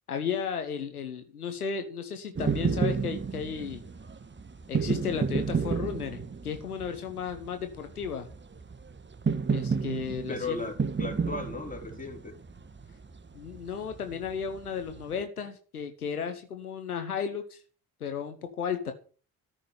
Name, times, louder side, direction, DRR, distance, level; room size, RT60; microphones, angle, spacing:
voice 1, 0.1-3.8 4.7-8.3 9.5-10.6 13.3-17.6 18.0-18.9, left 7 dB, 85° left, 7 dB, 1.2 m, -34 dB
sound 1, 2.4-15.2, right 5 dB, 25° right, 1.6 m, -32 dB
voice 2, 10.3-12.4, left 3 dB, 20° left, 3 dB, 4.5 m, -36 dB
13.5 x 6.5 x 9.5 m, 0.39 s
figure-of-eight pair, 40°, 44 cm